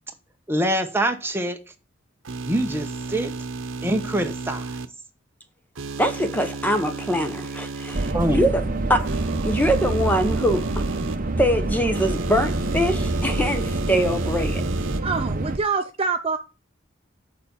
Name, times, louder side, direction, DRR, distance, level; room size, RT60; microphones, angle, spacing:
voice 1, 0.5-1.6 2.4-3.3 3.8-4.8 8.1-8.5, right 1 dB, 10° right, 1.1 m, -24 dB
sound 1, 2.3-4.9 5.8-8.1 9.0-11.2 11.9-15.0, right 3 dB, 90° right, 0.8 m, -33 dB
voice 2, 6.0-8.6 8.9-9.2 9.4-10.9 11.4-14.6, equal, 10° left, 1.0 m, -23 dB
sound 2, 7.9-15.6, right 2 dB, 45° right, 0.9 m, -26 dB
voice 3, 15.0-16.4, right 4 dB, 30° right, 0.5 m, -25 dB
6.9 x 5.2 x 7.1 m
head